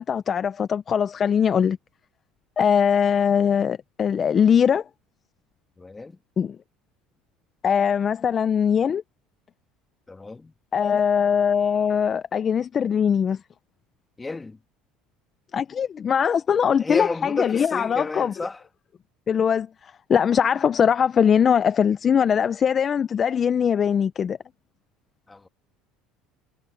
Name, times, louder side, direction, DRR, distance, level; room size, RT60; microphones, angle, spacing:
voice 1, 0.0-1.8 2.6-4.8 6.4-6.6 7.6-9.0 10.7-13.4 15.5-18.3 19.3-24.4, left 7 dB, 35° left, 0.8 m, -21 dB
voice 2, 5.8-6.2 10.1-10.5 14.2-14.6 16.8-18.6 25.3-25.5, left 3 dB, 15° left, 2.0 m, -32 dB
supercardioid pair, 95°, 0 cm